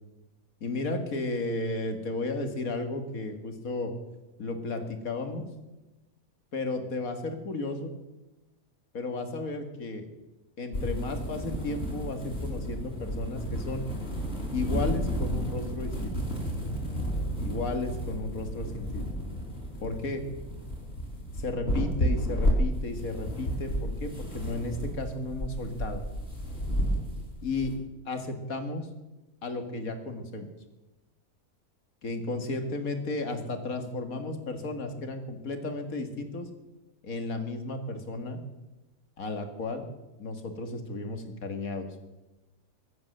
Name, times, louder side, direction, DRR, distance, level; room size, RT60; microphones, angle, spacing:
voice 1, 0.6-3.9 4.4-5.4 6.5-7.9 8.9-10.1 10.6-13.9 14.5-16.2 17.4-19.0 19.8-20.2 21.4-26.0 27.4-27.7 28.1-28.9 29.4-30.5 32.0-36.5 37.0-38.4 39.2-39.9 40.2-41.9, left 2 dB, 70° left, 6 dB, 2.2 m, -34 dB
sound 1, 10.7-27.7, equal, 45° left, 4.5 m, -32 dB
23.0 x 9.4 x 6.6 m, 1.0 s
omnidirectional pair, 1.5 m